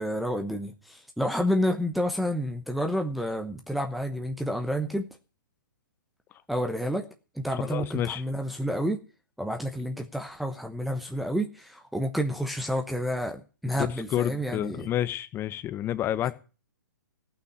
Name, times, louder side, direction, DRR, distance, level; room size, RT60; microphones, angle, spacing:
voice 1, 0.0-5.1 6.5-7.1 7.3-9.0 9.4-14.9, equal, ahead, 3 dB, 1.0 m, -29 dB
voice 2, 7.5-8.2 13.8-16.3, left 12 dB, 20° left, 13 dB, 1.0 m, -29 dB
15.5 x 6.0 x 9.5 m, 0.35 s
figure-of-eight pair, 125°, 11 cm